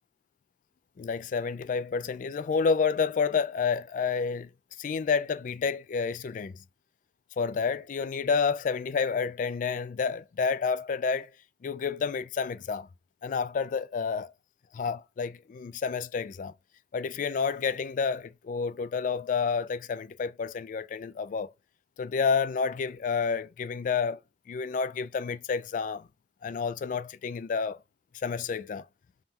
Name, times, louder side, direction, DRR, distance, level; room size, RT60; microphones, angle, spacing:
voice 1, 1.0-4.5 4.8-6.6 7.4-11.3 11.6-12.9 13.2-14.3 14.7-16.5 16.9-21.5 22.0-24.2 24.5-26.1 26.4-27.8 28.2-28.8, left 5 dB, 45° left, 0.3 m, -29 dB
5.5 x 2.2 x 2.9 m
head